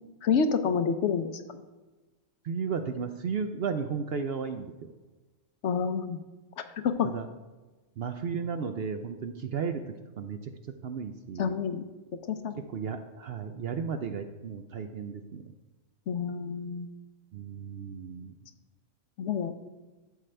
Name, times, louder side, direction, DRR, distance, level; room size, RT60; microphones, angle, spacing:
voice 1, 0.2-1.4 5.6-6.2 6.8-7.1 11.4-11.8 12.2-12.5 16.1-16.9 19.2-19.5, left 6 dB, 65° left, 9 dB, 0.9 m, -28 dB
voice 2, 2.4-4.9 7.1-7.3 8.0-10.5 10.8-11.6 12.7-15.5 17.3-18.3, right 6 dB, 60° right, 7 dB, 0.7 m, -34 dB
12.5 x 7.7 x 3.3 m, 1.2 s
omnidirectional pair, 1.4 m